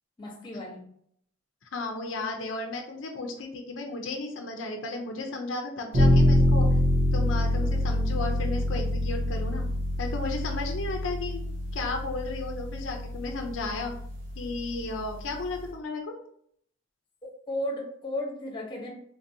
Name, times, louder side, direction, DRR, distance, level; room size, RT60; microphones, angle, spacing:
voice 1, 0.2-0.9 7.6-7.7 17.5-18.9, left 1 dB, 25° left, -2 dB, 0.9 m, -34 dB
voice 2, 1.7-6.7 7.1-9.6 10.0-11.5 11.7-13.9 14.4-16.0, left 3 dB, 80° left, 2 dB, 0.5 m, -34 dB
sound 1, 5.9-15.7, left 1 dB, 85° right, 1.0 m, -26 dB
3.9 x 2.6 x 2.7 m, 0.68 s
head